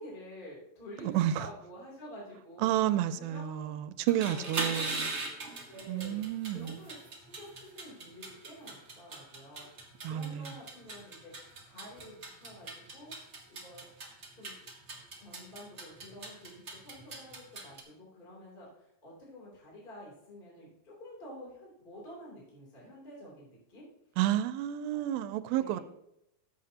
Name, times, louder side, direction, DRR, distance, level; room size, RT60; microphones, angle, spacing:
voice 1, 0.0-2.7 3.1-3.8 4.1-5.1 5.7-13.1 13.5-13.9 14.3-14.6 15.2-23.8 24.9-25.2 25.6-25.8, equal, 15° left, -5 dB, 2.6 m, -49 dB
voice 2, 1.1-1.5 2.6-5.0 5.9-6.8 10.0-10.5 24.2-25.8, right 12 dB, 85° right, 13 dB, 2.4 m, -30 dB
sound 1, 4.0-17.8, right 3 dB, 50° right, 0.8 m, -41 dB
14.0 x 8.0 x 2.8 m, 0.81 s
omnidirectional pair, 4.1 m